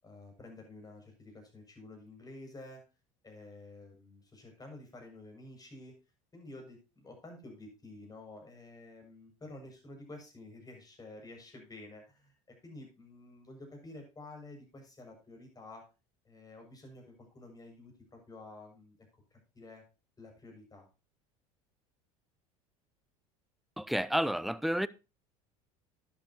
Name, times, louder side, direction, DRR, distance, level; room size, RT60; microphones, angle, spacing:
voice 1, 0.0-2.8 3.2-6.0 6.3-15.8 16.2-19.0 19.3-19.8 20.2-20.9, left 2 dB, 20° left, 6.9 m, -50 dB
voice 2, 23.8-24.9, equal, ahead, 0.5 m, -30 dB
12.5 x 10.5 x 2.9 m
hypercardioid pair, 75°, 18 cm